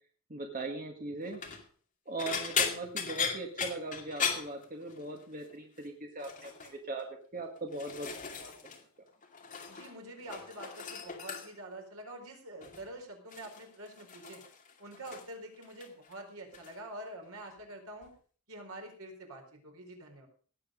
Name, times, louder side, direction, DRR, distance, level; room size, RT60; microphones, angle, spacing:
voice 1, 0.3-1.4 2.0-7.1 7.3-8.5, right 2 dB, 40° right, 2 dB, 1.8 m, -40 dB
sound 1, 1.2-1.6 2.2-5.2 5.5-5.9 6.2-6.7 7.4-8.8 9.1-9.9 10.2-11.7 12.6-12.9 13.3-15.4 15.6-16.2 16.5-16.7 18.0-18.1, left 6 dB, 35° left, 2.6 m, -37 dB
voice 2, 9.7-14.4 14.8-18.1 18.5-20.3, right 1 dB, 75° right, 3 dB, 4.5 m, -46 dB
18.5 x 8.2 x 5.2 m, 0.43 s
head